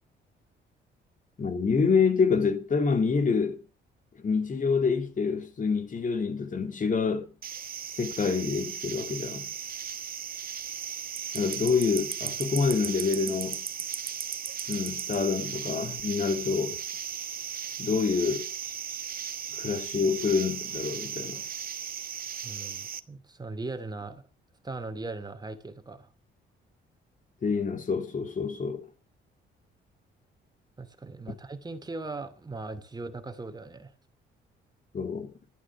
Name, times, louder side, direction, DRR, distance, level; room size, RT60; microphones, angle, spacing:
voice 1, 1.4-3.6 4.2-7.3 7.9-9.5 11.3-13.6 14.7-16.8 17.8-18.4 19.5-21.4 27.4-28.8 34.9-35.3, left 5 dB, 40° left, 3.0 m, -27 dB
sound 1, 7.4-23.0, right 8 dB, 45° right, 1.0 m, -36 dB
voice 2, 22.4-24.3 24.6-26.1 30.8-33.9, right 3 dB, 20° right, 2.5 m, -39 dB
12.5 x 11.0 x 5.9 m
cardioid pair, 90°, 20 cm